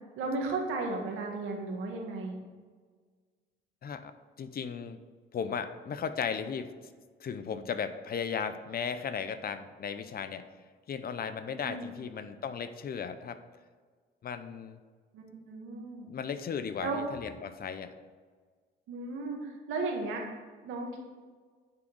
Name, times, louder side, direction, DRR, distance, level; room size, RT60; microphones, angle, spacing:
voice 1, 0.2-2.4 11.6-11.8 15.1-16.1 16.8-17.0 18.9-20.2 20.6-21.0, right 3 dB, 85° right, 1 dB, 1.7 m, -35 dB
voice 2, 4.4-5.0 5.3-6.7 7.2-10.5 10.9-13.4 14.2-14.8 16.1-17.9, left 6 dB, 50° left, 11 dB, 0.7 m, -36 dB
9.6 x 3.9 x 6.3 m, 1.5 s
cardioid pair, 90°, 20 cm